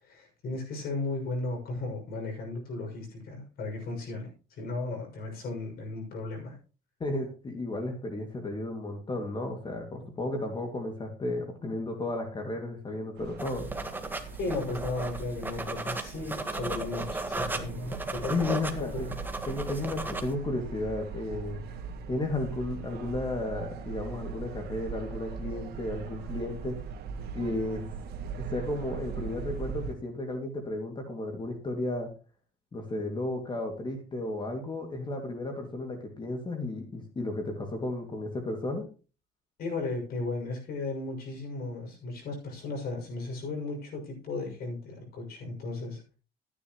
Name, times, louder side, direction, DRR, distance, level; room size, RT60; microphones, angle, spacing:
voice 1, 0.0-4.3 4.6-6.6 14.4-18.6 18.9-19.2 39.6-46.0, left 3 dB, 65° left, 2 dB, 6.4 m, -35 dB
voice 2, 7.0-13.7 18.3-19.1 19.4-21.8 22.1-26.8 27.3-27.9 28.4-32.1 32.7-38.8, left 2 dB, 30° left, 4 dB, 2.3 m, -33 dB
sound 1, 13.2-29.9, right 5 dB, 70° right, 1.9 m, -40 dB
sound 2, 13.4-20.3, right 2 dB, 10° right, 1.5 m, -36 dB
14.0 x 9.9 x 3.1 m, 0.35 s
cardioid pair, 110°, 17 cm